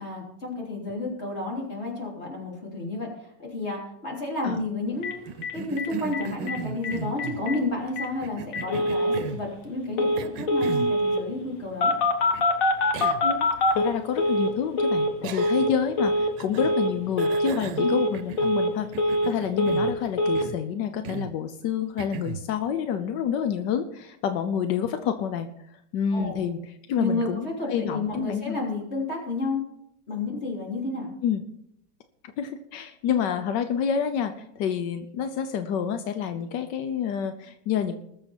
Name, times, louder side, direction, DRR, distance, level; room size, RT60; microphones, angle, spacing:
voice 1, 0.0-3.1 3.4-5.2 5.5-11.9 17.8-17.9 26.1-26.4 27.0-29.6 30.1-31.1, left 2 dB, 35° left, -2 dB, 3.6 m, -31 dB
Telephone, 5.0-5.1 5.4-5.5 5.8-5.9 6.1-6.6 6.8-6.9 7.2-7.6 8.0-8.1 8.5-9.2 10.0-10.2 10.5-11.2 11.8-14.5 14.8-15.1 15.4-15.7 16.0-16.3 16.6-16.9 17.2-17.5 17.8-18.1 18.4-19.3 19.6-19.9 20.2-20.4, left 1 dB, 55° left, 1.7 m, -24 dB
Cough, 5.3-7.4 8.2-9.5 10.2-11.0 12.3-12.4 12.9-13.3 13.7-13.8 15.2-15.8 16.4-16.8 17.2-18.6 18.9-20.0 20.3-20.6 21.0-21.4 22.0-22.5, right 7 dB, 85° right, 1.4 m, -37 dB
voice 2, 13.7-25.5 25.9-28.6 31.2-31.4 32.4-38.0, left 8 dB, 85° left, 9 dB, 1.4 m, -28 dB
20.0 x 7.1 x 4.3 m, 0.75 s
omnidirectional pair, 1.9 m